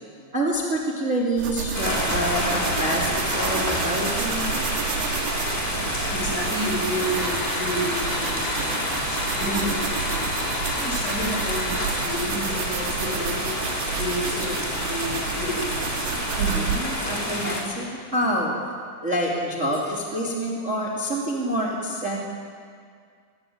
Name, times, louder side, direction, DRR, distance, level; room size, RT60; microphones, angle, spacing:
voice 1, 0.3-4.6 16.4-18.5 19.0-22.2, right 1 dB, 20° right, -2 dB, 2.7 m, -27 dB
sound 1, 1.4-16.8, right 7 dB, 70° right, 3.5 m, -31 dB
sound 2, 1.7-17.6, equal, 10° left, 3.6 m, -28 dB
voice 2, 5.9-10.2 10.8-13.5 14.0-15.8, equal, 45° left, -1 dB, 7.3 m, -31 dB
sound 3, 7.0-12.1, left 3 dB, 80° left, 5.1 m, -33 dB
23.5 x 21.0 x 9.6 m, 2.1 s
omnidirectional pair, 4.9 m